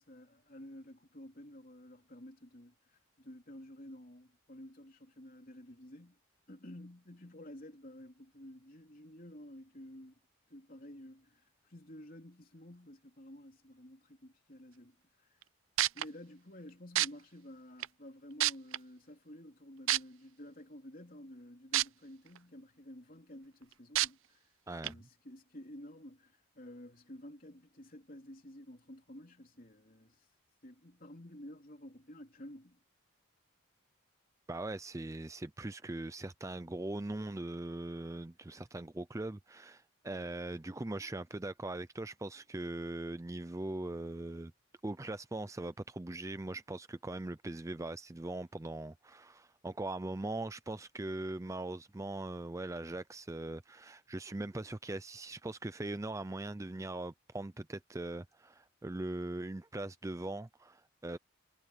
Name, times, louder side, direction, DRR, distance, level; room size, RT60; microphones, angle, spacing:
voice 1, 0.0-2.8 3.2-6.2 6.5-10.2 10.5-15.4 15.9-24.5 24.8-30.3 30.6-32.8, left 1 dB, 40° left, 3.7 m, -52 dB
sound 1, 15.4-15.5 15.8-16.0 17.0-17.1 17.8-17.9 18.4-18.8 19.9-20.0 21.7-21.8 22.4-22.5 24.0-24.1 24.8-24.9, right 14 dB, 75° right, 0.6 m, -27 dB
voice 2, 24.7-25.0 34.5-44.5 44.8-61.2, right 2 dB, 15° right, 0.4 m, -40 dB
head